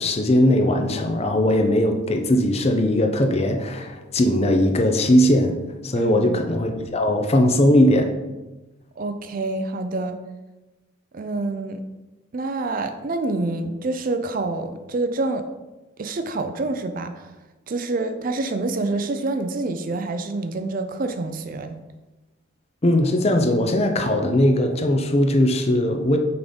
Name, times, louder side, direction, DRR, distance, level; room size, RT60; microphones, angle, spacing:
voice 1, 0.0-8.1 22.8-26.2, left 1 dB, 30° left, 5 dB, 0.5 m, -19 dB
voice 2, 5.9-6.4 9.0-10.2 11.1-11.8 12.3-15.4 16.0-17.3 17.7-21.8, right 2 dB, 40° right, 8 dB, 0.4 m, -27 dB
6.0 x 3.7 x 5.1 m, 1.1 s
head